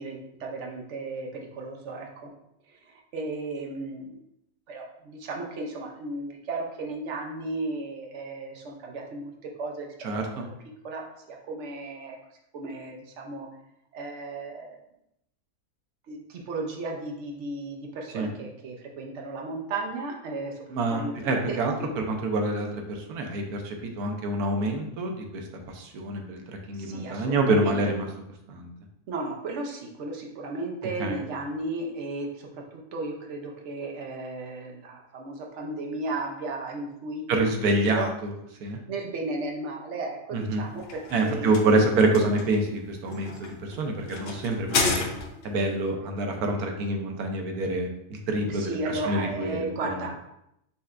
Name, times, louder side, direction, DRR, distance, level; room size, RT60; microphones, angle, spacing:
voice 1, 0.0-2.3 2.7-4.2 4.7-9.3 9.6-9.9 10.8-11.0 11.3-12.2 12.5-13.5 13.9-14.8 16.1-21.9 26.8-27.8 29.1-38.1 38.9-41.8 48.5-50.1, right 2 dB, 60° right, 1 dB, 1.0 m, -35 dB
voice 2, 10.0-10.4 18.1-18.3 20.7-28.0 28.5-28.7 31.0-31.2 37.3-38.3 38.6-38.8 40.3-40.6 41.1-45.0 45.4-49.6 49.8-50.0, right 2 dB, 85° right, 3 dB, 1.2 m, -27 dB
sound 1, 40.5-45.6, left 4 dB, 60° left, 0.7 m, -32 dB
5.5 x 3.2 x 2.5 m, 0.80 s
omnidirectional pair, 1.6 m